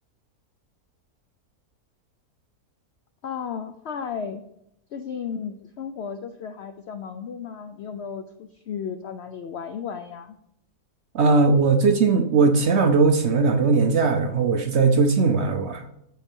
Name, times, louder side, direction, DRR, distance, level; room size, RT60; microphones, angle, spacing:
voice 1, 3.2-4.4 4.9-10.4, left 7 dB, 90° left, 9 dB, 0.5 m, -34 dB
voice 2, 11.1-15.9, right 4 dB, 60° right, 6 dB, 0.7 m, -19 dB
13.0 x 5.5 x 3.6 m, 0.79 s
omnidirectional pair, 1.7 m